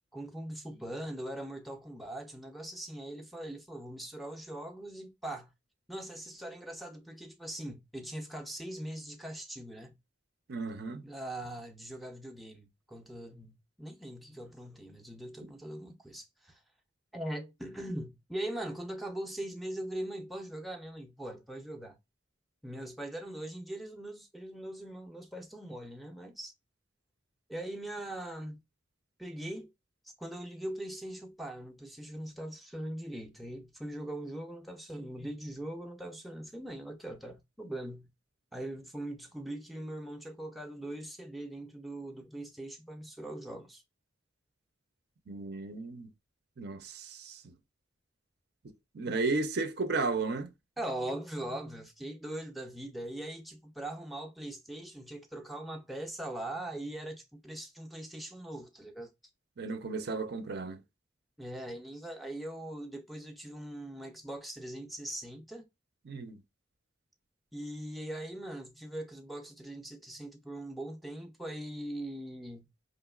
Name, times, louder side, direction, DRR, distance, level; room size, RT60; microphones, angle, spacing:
voice 1, 0.1-5.5 5.9-10.0 11.0-16.6 17.1-22.0 22.6-26.5 27.5-28.6 29.2-29.7 30.0-38.1 38.5-43.8 50.8-59.1 61.4-65.7 67.5-72.7, right 1 dB, ahead, 0.5 m, -41 dB
voice 2, 10.5-11.0 45.3-46.1 46.6-47.4 48.9-50.5 59.6-60.8 66.1-66.4, right 3 dB, 55° right, 0.5 m, -34 dB
5.0 x 3.0 x 2.3 m
head